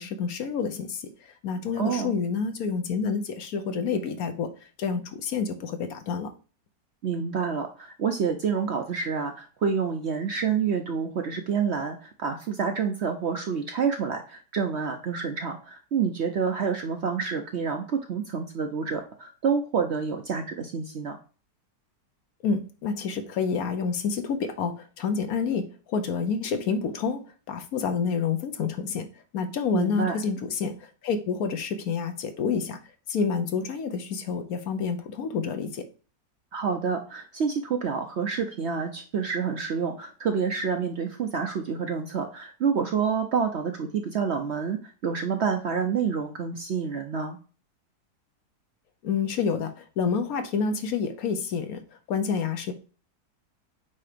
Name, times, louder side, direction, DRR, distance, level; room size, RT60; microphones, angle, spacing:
voice 1, 0.0-4.5 4.8-6.3 22.4-29.1 29.3-32.8 33.1-35.8 49.0-51.8 52.1-52.7, left 5 dB, 70° left, 1.2 m, -28 dB
voice 2, 1.8-2.2 7.0-21.2 29.7-30.2 36.5-47.4, right 6 dB, 60° right, 0.7 m, -28 dB
8.4 x 2.8 x 5.0 m
omnidirectional pair, 1.7 m